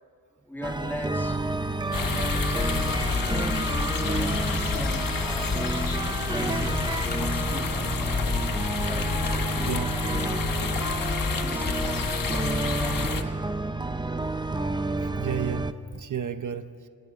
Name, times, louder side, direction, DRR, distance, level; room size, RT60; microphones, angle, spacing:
voice 1, 0.3-1.4 1.9-2.5 2.8-3.2 3.6-6.8 7.2-8.3 8.9-13.4, equal, 5° left, 2 dB, 2.2 m, -41 dB
sound 1, 0.6-15.7, right 2 dB, 15° right, 0.7 m, -30 dB
sound 2, 1.9-13.2, left 5 dB, 75° left, 1.5 m, -29 dB
sound 3, 7.0-7.2 9.3-9.4 11.5-11.8, left 4 dB, 30° left, 0.7 m, -40 dB
voice 2, 9.7-10.0 15.0-16.9, right 8 dB, 60° right, 9 dB, 1.0 m, -33 dB
27.5 x 26.5 x 5.1 m, 2.5 s
wide cardioid pair, 165°, 34 cm